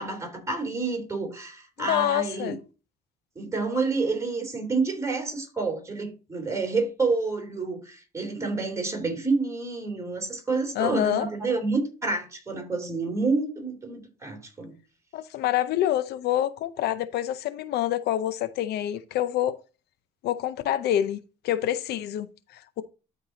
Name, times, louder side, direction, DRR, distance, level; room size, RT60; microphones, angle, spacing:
voice 1, 0.0-2.5 3.4-14.7, right 3 dB, 15° right, 3.5 m, -28 dB
voice 2, 1.9-2.6 10.8-11.3 15.1-19.6 20.2-22.8, left 12 dB, 75° left, 0.6 m, -27 dB
12.5 x 4.6 x 2.8 m
cardioid pair, 110°, 17 cm